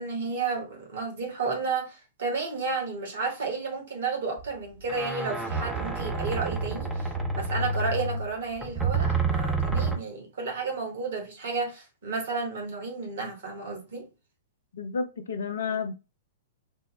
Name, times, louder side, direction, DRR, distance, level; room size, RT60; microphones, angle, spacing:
voice 1, 0.0-14.1, right 4 dB, 60° right, 1.3 m, -32 dB
sound 1, 4.4-4.5 4.8-10.0, right 3 dB, 5° right, 0.6 m, -28 dB
voice 2, 14.7-15.9, left 5 dB, 60° left, 0.5 m, -31 dB
3.5 x 2.0 x 3.1 m
figure-of-eight pair, 105°, 0 cm